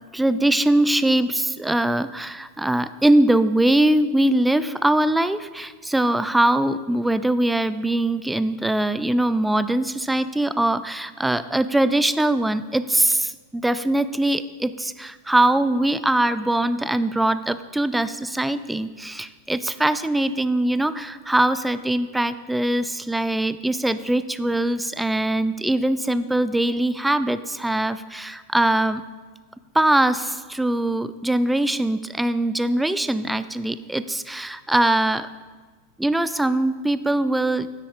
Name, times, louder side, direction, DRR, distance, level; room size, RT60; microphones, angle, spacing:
voice 1, 0.1-29.0 29.7-35.3 36.0-37.7, right 1 dB, 5° right, 14 dB, 0.3 m, -22 dB
9.8 x 8.3 x 3.7 m, 1.4 s
figure-of-eight pair, 90°, 0 cm